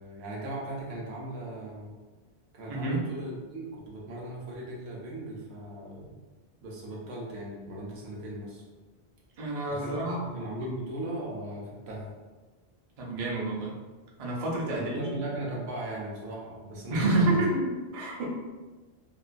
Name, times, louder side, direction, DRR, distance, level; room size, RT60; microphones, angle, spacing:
voice 1, 0.0-2.0 2.5-6.2 6.6-8.6 9.7-12.1 14.7-17.4, right 1 dB, 75° right, -3 dB, 0.9 m, -38 dB
voice 2, 2.7-3.0 9.4-10.3 10.6-10.7 13.0-13.8 14.2-15.1 16.9-18.2, right 2 dB, 45° right, -3 dB, 0.5 m, -28 dB
2.6 x 2.2 x 2.4 m, 1.3 s
omnidirectional pair, 1.1 m